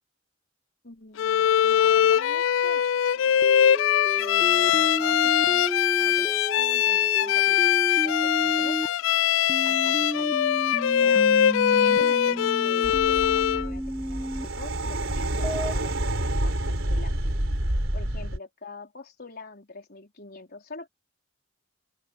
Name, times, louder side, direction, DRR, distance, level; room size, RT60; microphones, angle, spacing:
voice 1, 0.8-3.5 4.1-5.7 6.0-9.0 9.6-10.4 10.9-11.4 11.6-17.2 17.9-20.9, left 3 dB, 50° left, 4.4 m, -44 dB
Bowed string instrument, 1.2-13.7, left 10 dB, 65° left, 0.3 m, -22 dB
sound 1, 3.4-8.9 9.5-14.5 15.4-15.7, equal, ahead, 1.2 m, -32 dB
sound 2, 12.8-18.4, right 1 dB, 70° right, 4.2 m, -28 dB
open air
head